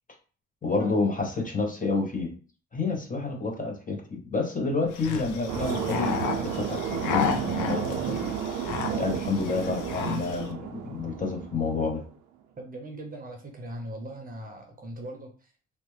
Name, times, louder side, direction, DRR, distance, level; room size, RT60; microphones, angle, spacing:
voice 1, 0.6-2.3 2.7-12.0, left 3 dB, 25° left, 2 dB, 0.7 m, -29 dB
sound 1, 4.9-10.5, left 6 dB, 85° left, 0.5 m, -33 dB
sound 2, 5.5-11.9, right 8 dB, 80° right, 0.5 m, -32 dB
voice 2, 12.6-15.5, right 1 dB, 30° right, 2 dB, 0.7 m, -40 dB
2.9 x 2.0 x 3.1 m, 0.38 s
cardioid pair, 90°, 30 cm